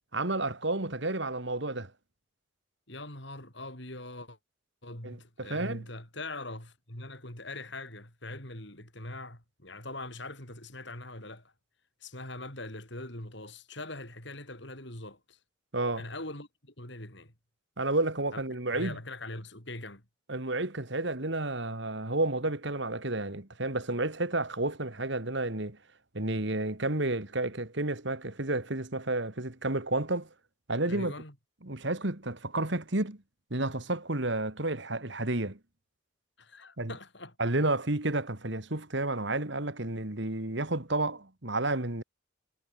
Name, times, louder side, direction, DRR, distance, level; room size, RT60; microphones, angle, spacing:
voice 1, 0.1-1.9 5.0-5.8 15.7-16.0 17.8-19.0 20.3-25.8 26.1-30.3 30.7-31.1 31.6-33.2 33.5-35.6 36.8-36.9 37.4-42.0, right 2 dB, 55° right, 2.2 m, -31 dB
voice 2, 2.9-4.4 4.8-11.5 12.0-15.4 16.0-17.3 18.3-18.4 18.7-20.0 30.9-31.4 36.4-37.4, left 2 dB, 55° left, 7.0 m, -42 dB
head